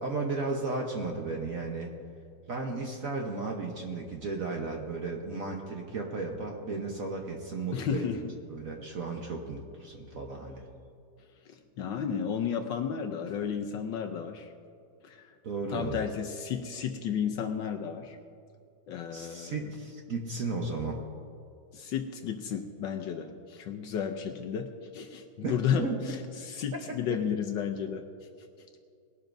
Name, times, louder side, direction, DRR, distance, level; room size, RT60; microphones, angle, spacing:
voice 1, 0.0-1.9 2.5-8.1 8.5-10.7 15.4-16.0 19.1-21.0 25.4-26.0 26.9-27.2, right 3 dB, 50° right, 1 dB, 1.1 m, -34 dB
voice 2, 7.7-8.3 11.5-14.5 15.0-15.3 15.7-18.2 18.9-19.6 21.7-28.0, left 7 dB, 70° left, 5 dB, 1.2 m, -33 dB
20.0 x 12.0 x 2.6 m, 2.5 s
omnidirectional pair, 2.4 m